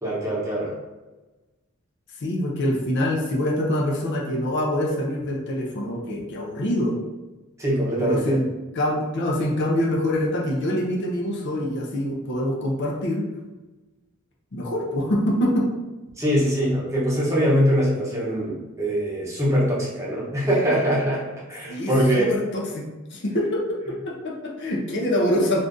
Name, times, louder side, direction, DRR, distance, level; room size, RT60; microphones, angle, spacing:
voice 1, 0.0-0.7 7.6-8.4 16.2-22.3, equal, 15° right, -6 dB, 0.9 m, -23 dB
voice 2, 2.2-7.0 8.0-8.5 8.7-13.3 14.5-15.7 21.7-22.8 23.1-25.6, left 1 dB, 60° left, -2 dB, 0.6 m, -25 dB
2.6 x 2.5 x 3.6 m, 1.1 s
head